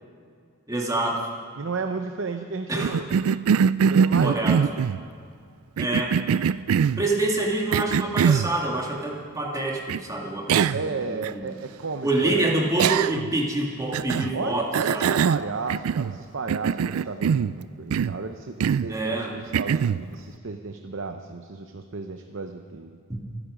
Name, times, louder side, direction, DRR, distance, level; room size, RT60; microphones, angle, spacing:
voice 1, 0.7-1.3 2.7-3.0 4.2-4.6 5.8-6.2 7.0-11.5 12.0-15.1 18.9-19.4, right 2 dB, 15° right, -1 dB, 2.0 m, -26 dB
voice 2, 1.6-3.1 3.9-4.9 10.7-12.5 14.3-23.0, right 4 dB, 60° right, 6 dB, 0.7 m, -33 dB
Cough, 2.8-5.0 5.8-7.0 7.7-8.5 9.9-10.0 10.5-10.9 11.2-11.3 12.8-13.3 13.9-14.3 14.7-16.2 16.5-17.5 17.9-18.2 18.6-18.9 19.5-20.0, right 7 dB, 85° right, 0.3 m, -22 dB
27.0 x 10.0 x 5.1 m, 2.2 s
head